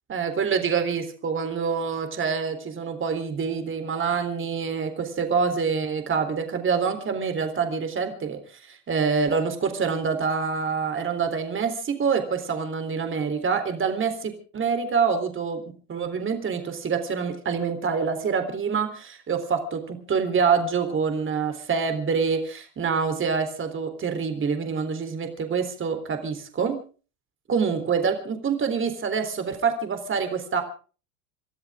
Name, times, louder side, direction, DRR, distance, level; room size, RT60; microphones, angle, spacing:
voice 1, 0.1-8.4 8.7-15.6 15.9-26.8 27.5-30.6, right 5 dB, 25° right, 7 dB, 3.8 m, -26 dB
28.5 x 13.0 x 3.7 m, 0.38 s
hypercardioid pair, 95°, 45 cm